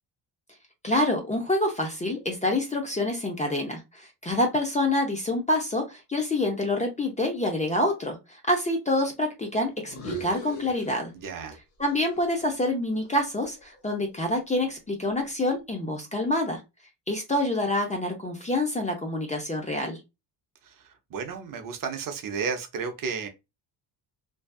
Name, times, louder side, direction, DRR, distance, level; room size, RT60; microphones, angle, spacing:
voice 1, 0.8-11.1 11.8-16.6 17.1-20.0, left 1 dB, 15° left, 0.5 m, -27 dB
sound 1, 9.8-11.6 11.9-14.1, right 1 dB, 40° left, 0.8 m, -41 dB
voice 2, 11.2-11.6 20.6-23.3, right 5 dB, 45° right, 0.6 m, -33 dB
2.6 x 2.3 x 2.2 m
cardioid pair, 115°, 45 cm